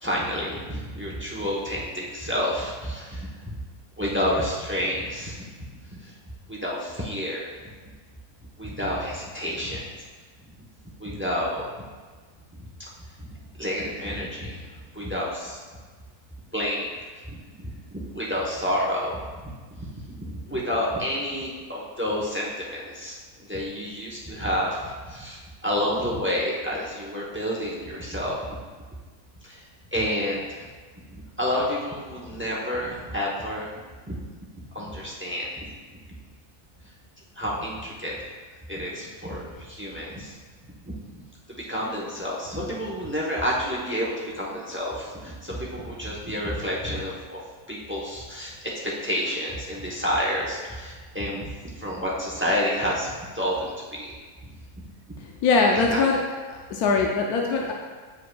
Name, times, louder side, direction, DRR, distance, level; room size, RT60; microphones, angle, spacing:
voice 1, 0.0-3.6 4.0-5.4 5.9-6.1 6.5-7.7 8.6-9.9 11.0-11.7 12.8-12.9 13.3-15.6 16.5-16.9 17.3-19.5 19.8-28.4 29.4-29.6 29.9-30.7 31.1-33.8 34.1-34.2 34.7-35.7 37.4-38.2 38.7-40.3 40.9-41.2 41.5-47.4 47.7-54.1 54.4-54.5 54.7-54.8 55.7-56.0, equal, 15° right, -4 dB, 0.5 m, -29 dB
voice 2, 55.4-56.2 56.5-57.7, left 4 dB, 75° left, 0 dB, 1.1 m, -22 dB
8.9 x 5.0 x 2.3 m, 1.4 s
omnidirectional pair, 1.7 m